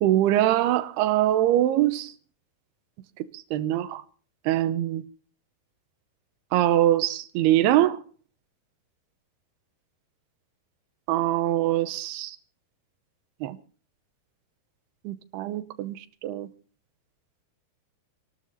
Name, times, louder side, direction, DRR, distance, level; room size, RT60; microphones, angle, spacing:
voice 1, 0.0-2.1 3.5-4.0 4.5-5.0 6.5-8.0 11.1-12.4 13.4-13.6 15.0-16.5, right 13 dB, 85° right, 2.8 m, -23 dB
28.0 x 12.5 x 2.7 m
omnidirectional pair, 4.6 m